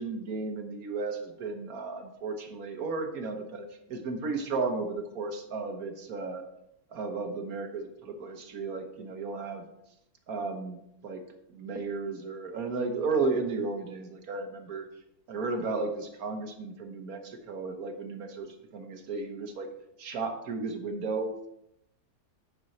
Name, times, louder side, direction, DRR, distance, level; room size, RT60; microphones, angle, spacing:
voice 1, 0.0-6.4 6.9-9.6 10.3-11.2 11.5-14.9 15.3-18.5 18.7-19.7 20.0-21.5, right 3 dB, 65° right, 5 dB, 1.6 m, -34 dB
9.2 x 6.2 x 4.1 m, 0.79 s
omnidirectional pair, 1.7 m